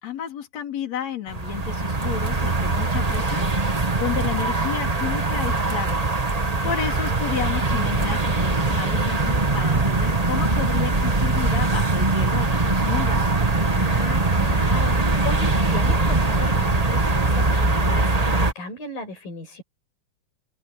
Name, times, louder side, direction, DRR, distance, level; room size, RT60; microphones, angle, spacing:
voice 1, 0.0-13.3, left 9 dB, 50° left, 4.7 m, -32 dB
sound 1, 1.3-18.5, right 3 dB, 35° right, 0.6 m, -22 dB
voice 2, 6.4-6.9 13.7-19.6, left 2 dB, 85° left, 8.1 m, -35 dB
omnidirectional pair, 3.9 m